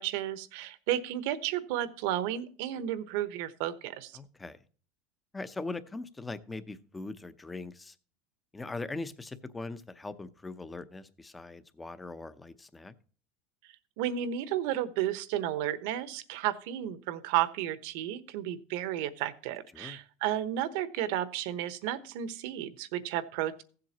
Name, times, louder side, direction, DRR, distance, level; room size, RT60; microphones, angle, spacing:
voice 1, 0.0-4.2 14.0-23.6, right 12 dB, 70° right, 14 dB, 1.0 m, -32 dB
voice 2, 4.1-4.6 5.3-7.9 8.5-12.9 19.7-20.0, left 3 dB, 10° left, 13 dB, 0.6 m, -41 dB
15.5 x 7.6 x 2.9 m, 0.41 s
supercardioid pair, 145°, 0 cm